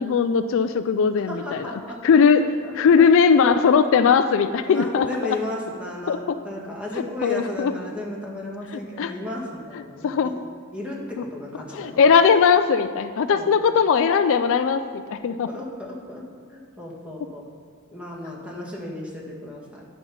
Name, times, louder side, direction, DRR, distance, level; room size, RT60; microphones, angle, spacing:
voice 1, 0.0-1.7 2.0-2.4 2.8-5.4 6.1-6.4 7.2-7.7 9.0-9.1 10.0-10.3 11.7-15.5, left 6 dB, 60° left, 10 dB, 0.3 m, -19 dB
voice 2, 1.3-2.2 2.6-3.1 3.4-3.5 4.7-10.3 10.7-12.1 13.3-13.5 15.5-17.4 17.9-19.8, left 1 dB, 5° right, -3 dB, 1.5 m, -34 dB
10.0 x 5.4 x 5.7 m, 2.1 s
head